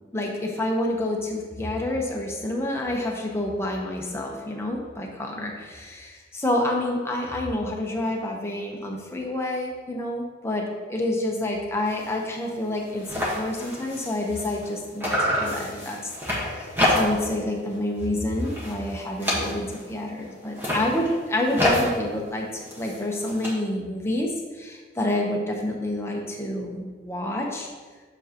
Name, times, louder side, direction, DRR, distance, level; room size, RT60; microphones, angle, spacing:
voice 1, 0.1-16.0 16.4-27.7, left 1 dB, 15° left, -1 dB, 0.8 m, -28 dB
sound 1, 11.9-12.1 12.4-12.5 12.7-14.7 15.0-17.4 17.7-18.1 18.4-19.9 20.4-23.5, left 1 dB, 10° right, 1.3 m, -28 dB
7.1 x 6.7 x 2.9 m, 1.4 s
head